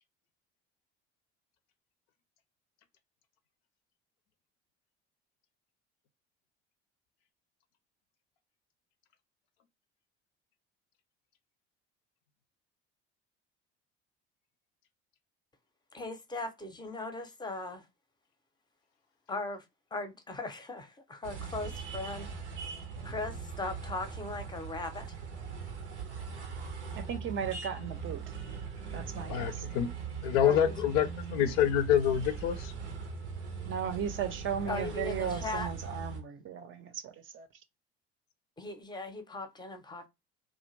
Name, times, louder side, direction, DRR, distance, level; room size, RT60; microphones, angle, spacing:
voice 1, 15.9-17.8 19.3-19.6 19.9-22.3 23.0-25.2 30.4-30.7 34.7-35.7 38.6-40.1, left 2 dB, 15° left, 0.6 m, -38 dB
sound 1, 21.2-36.2, right 5 dB, 85° right, 0.6 m, -40 dB
voice 2, 27.0-28.2 28.9-29.6 33.7-37.5, right 7 dB, 35° right, 0.5 m, -36 dB
voice 3, 29.3-29.9 30.2-32.7, left 9 dB, 65° left, 0.5 m, -27 dB
2.4 x 2.1 x 3.0 m
figure-of-eight pair, 60°, 34 cm